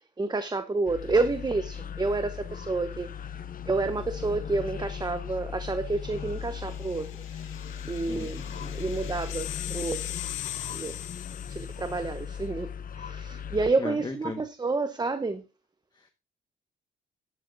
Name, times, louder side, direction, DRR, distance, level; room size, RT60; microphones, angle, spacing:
voice 1, 0.2-3.1 3.7-7.4 7.9-10.1 10.7-11.0 11.5-12.7 12.9-15.5, right 3 dB, 20° right, 1.0 m, -29 dB
sound 1, 0.8-13.7, left 7 dB, 45° left, 0.8 m, -38 dB
sound 2, 6.2-12.1, left 12 dB, 85° left, 2.1 m, -40 dB
voice 2, 13.8-14.4 15.9-16.1, left 3 dB, 20° left, 1.6 m, -36 dB
13.0 x 12.0 x 2.7 m
cardioid pair, 90°, 20 cm